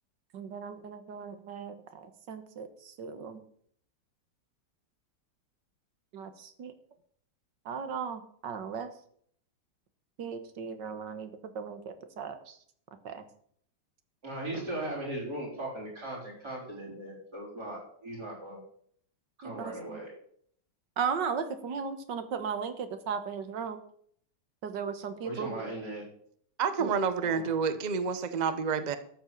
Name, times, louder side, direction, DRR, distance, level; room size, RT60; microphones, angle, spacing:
voice 1, 0.3-3.4 6.1-6.7 7.7-8.9 10.2-12.6 13.0-13.2 19.4-20.0 21.0-23.8 24.6-25.6 26.8-26.9, right 6 dB, 80° right, 10 dB, 1.9 m, -36 dB
voice 2, 14.2-18.6 19.4-20.1 25.2-26.0 27.2-27.5, right 1 dB, 60° right, -3 dB, 4.9 m, -38 dB
voice 3, 26.6-29.0, right 6 dB, 35° right, 11 dB, 0.8 m, -29 dB
13.0 x 7.4 x 6.6 m, 0.62 s
omnidirectional pair, 1.9 m